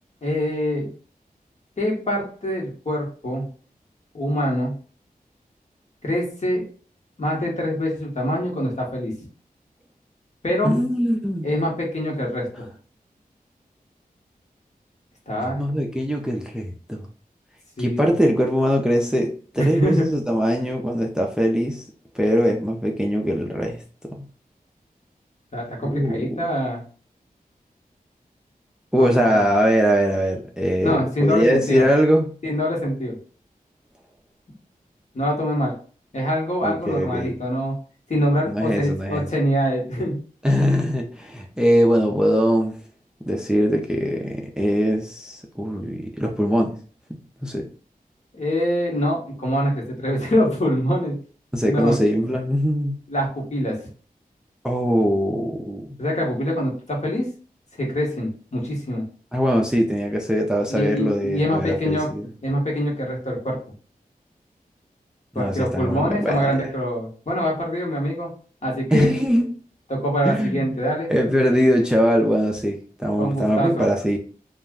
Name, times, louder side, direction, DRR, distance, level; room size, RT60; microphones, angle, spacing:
voice 1, 0.2-0.9 1.8-3.4 4.1-4.7 6.0-6.6 7.2-9.1 10.4-10.7 11.4-12.6 15.3-15.6 17.8-18.0 19.6-20.0 25.5-26.8 28.9-29.4 30.8-31.8 32.4-33.2 35.1-35.7 36.1-37.8 38.1-40.2 48.3-51.2 51.6-52.0 53.1-53.8 56.0-57.3 57.8-59.0 60.7-62.1 62.4-63.6 65.3-68.3 68.6-69.1 69.9-71.1 73.2-73.9, equal, 50° left, -2 dB, 1.2 m, -24 dB
voice 2, 10.6-11.5 15.4-17.1 17.8-21.9 22.1-23.8 25.8-26.4 28.9-32.3 36.6-37.4 38.5-39.3 40.4-42.8 43.3-46.8 47.1-47.7 51.5-53.0 54.6-55.9 59.3-62.3 65.3-66.7 68.9-69.5 70.2-70.8 71.1-74.2, equal, 5° right, 1 dB, 0.4 m, -21 dB
2.4 x 2.1 x 3.5 m, 0.40 s
wide cardioid pair, 60°, 15 cm